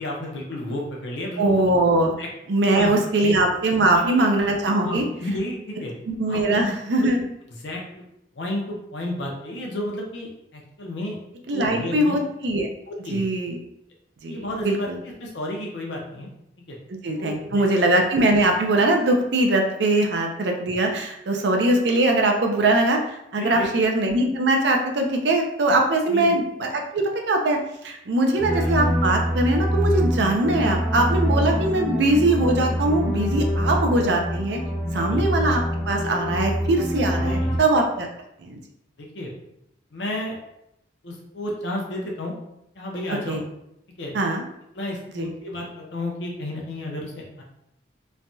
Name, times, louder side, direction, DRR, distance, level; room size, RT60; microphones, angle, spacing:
voice 1, 0.0-1.7 2.2-2.3 2.7-2.9 3.2-3.4 3.9-4.2 4.8-5.9 6.3-6.7 7.0-7.1 7.6-7.8 8.3-11.2 11.5-12.2 12.9-13.3 14.3-14.9 15.2-16.3 16.7-16.8 17.2-17.9 23.4-23.9 26.1-26.4 28.4-28.5 28.7-28.8 35.1-35.3 37.1-37.6 39.0-39.3 39.9-40.4 41.0-42.3 42.7-43.4 44.0-44.1 44.7-47.4, left 1 dB, 75° left, -1 dB, 0.7 m, -32 dB
voice 2, 1.4-2.2 2.5-5.0 6.1-7.2 11.5-12.7 13.1-13.6 14.2-15.0 17.0-23.0 23.3-27.6 27.8-34.6 34.9-38.1 38.4-38.6 43.3-43.4 44.1-44.4 45.1-45.3, right 2 dB, 70° right, 3 dB, 0.5 m, -21 dB
sound 1, 28.4-37.6, equal, 15° left, 0.4 m, -25 dB
3.2 x 2.2 x 2.6 m, 0.80 s
head